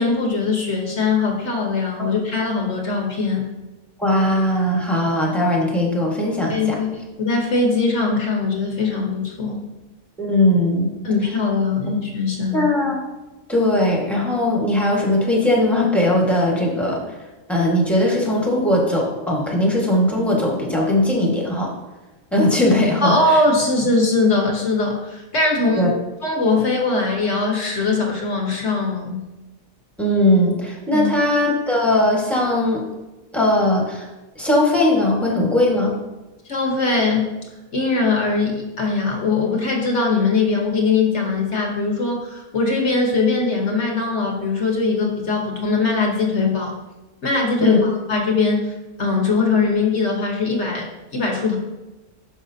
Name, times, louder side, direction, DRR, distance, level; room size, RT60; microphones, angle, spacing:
voice 1, 0.0-3.5 6.5-9.6 11.0-12.7 23.0-25.9 26.2-29.2 30.9-31.1 36.5-37.3 37.7-46.7 47.2-48.7 49.0-50.9 51.1-51.6, left 3 dB, 50° left, 0 dB, 1.4 m, -21 dB
voice 2, 4.0-6.8 10.2-10.9 12.5-13.0 13.5-17.0 17.5-21.7 22.3-23.4 25.8-25.9 30.0-32.8 33.3-34.1 34.3-36.0 47.6-47.8, left 1 dB, ahead, -2 dB, 1.4 m, -19 dB
10.0 x 6.1 x 2.8 m, 1.1 s
omnidirectional pair, 1.6 m